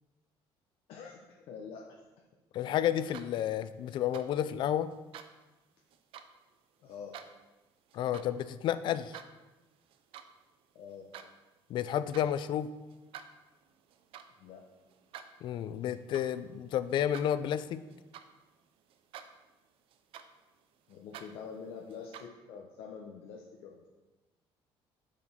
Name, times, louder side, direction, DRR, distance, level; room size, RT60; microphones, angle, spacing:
voice 1, 0.9-1.2 1.5-2.0 6.8-7.2 10.7-11.1 14.4-14.7 20.9-23.9, left 6 dB, 70° left, 0 dB, 0.8 m, -46 dB
voice 2, 2.5-4.9 7.9-9.2 11.7-12.7 15.4-17.8, left 10 dB, 50° left, 14 dB, 0.4 m, -31 dB
sound 1, 2.9-3.6 3.9-4.3 4.9-5.3 5.9-6.3 6.9-7.3 7.9-8.3 8.7-9.3 9.8-10.3 10.6-11.3 11.9-12.3 12.9-18.6 18.9-19.5 19.9-22.3, right 9 dB, 65° right, 0.5 m, -51 dB
7.0 x 4.9 x 4.3 m, 1.1 s
cardioid pair, 155°, 10 cm